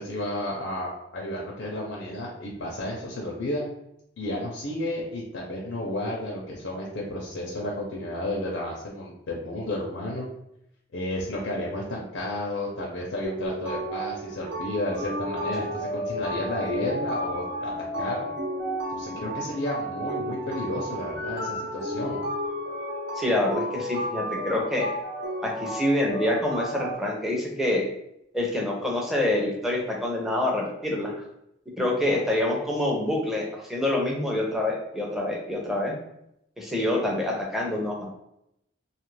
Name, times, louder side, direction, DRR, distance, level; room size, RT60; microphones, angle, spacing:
voice 1, 0.0-3.6 4.2-10.2 10.9-17.7 18.0-18.2 18.9-22.2, left 1 dB, 85° left, -4 dB, 0.6 m, -32 dB
sound 1, 13.2-26.9, equal, 70° right, 1.0 m, -32 dB
voice 2, 23.2-24.9 25.4-27.8 28.3-31.1 31.8-36.0 36.6-38.1, left 1 dB, ahead, -2 dB, 0.6 m, -26 dB
2.7 x 2.4 x 3.1 m, 0.80 s
head